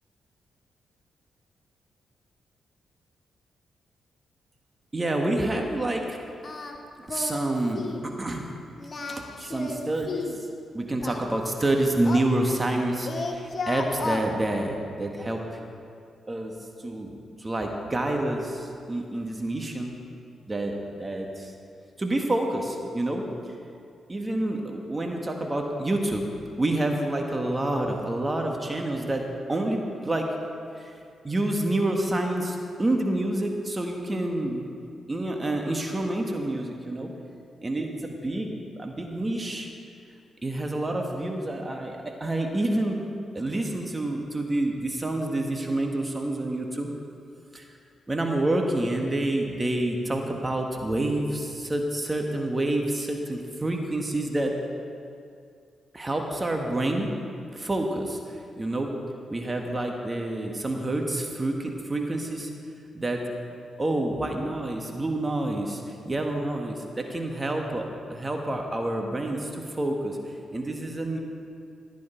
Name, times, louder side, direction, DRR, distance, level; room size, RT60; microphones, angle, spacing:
voice 1, 4.9-6.2 7.1-8.5 9.1-10.3 10.7-15.4 16.3-17.1 17.4-19.9 20.5-21.5 22.0-23.3 24.1-26.2 26.6-30.3 30.8-30.9 31.2-34.7 35.1-37.1 37.6-39.7 40.4-43.0 43.3-46.9 47.5-47.7 48.1-54.5 55.9-57.2 57.5-58.2 58.6-58.9 59.3-62.5 62.9-63.2 63.8-67.9 68.1-70.2 70.5-71.2, right 1 dB, 25° right, 2 dB, 1.7 m, -28 dB
Singing, 6.4-6.8 7.1-7.5 7.7-8.0 8.8-10.4 11.0-12.8 13.0-14.3, left 3 dB, 45° left, 1.3 m, -33 dB
15.5 x 9.5 x 4.6 m, 2.4 s
hypercardioid pair, 45°, 0 cm